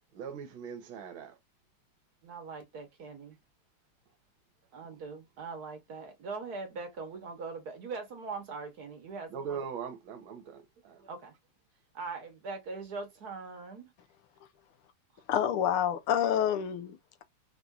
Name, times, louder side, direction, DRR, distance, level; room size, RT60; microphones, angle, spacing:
voice 1, 0.1-1.4 9.3-11.0, right 7 dB, 75° right, 1.4 m, -40 dB
voice 2, 2.2-3.4 4.7-9.6 11.0-11.3 11.9-13.9, right 4 dB, 55° right, 1.2 m, -41 dB
voice 3, 15.3-17.2, left 9 dB, 85° left, 1.5 m, -28 dB
4.4 x 2.5 x 2.2 m
omnidirectional pair, 2.4 m